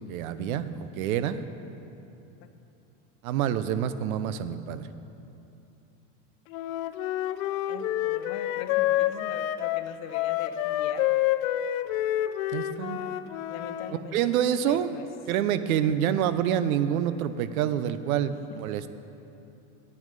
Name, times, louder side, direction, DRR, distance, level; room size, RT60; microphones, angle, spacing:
voice 1, 0.0-1.4 3.2-4.9 12.5-13.0 14.1-14.9 15.3-18.9, right 9 dB, 90° right, 13 dB, 0.7 m, -27 dB
Wind instrument woodwind instrument, 6.5-13.9, left 13 dB, 80° left, 0.6 m, -28 dB
voice 2, 7.7-11.2 12.9-14.4 14.7-15.1 15.8-15.9 18.3-18.6, left 9 dB, 40° left, 9 dB, 0.7 m, -43 dB
9.7 x 9.5 x 5.2 m, 2.8 s
supercardioid pair, 140°, 41 cm